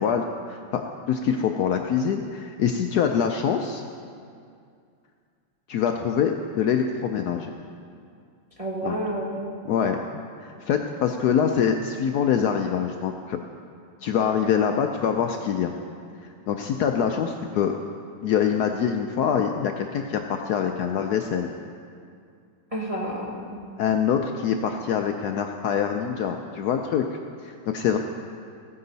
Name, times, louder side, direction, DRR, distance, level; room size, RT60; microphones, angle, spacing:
voice 1, 0.0-3.8 5.7-7.5 8.8-8.9 9.6-10.0 10.4-13.4 14.0-15.7 16.2-17.7 18.2-21.5 23.8-27.1 27.4-28.0, left 7 dB, 70° left, 4 dB, 1.0 m, -24 dB
voice 2, 8.6-9.6 22.7-23.6, right 1 dB, 25° right, -3 dB, 0.8 m, -30 dB
15.0 x 9.5 x 4.0 m, 2.3 s
omnidirectional pair, 2.0 m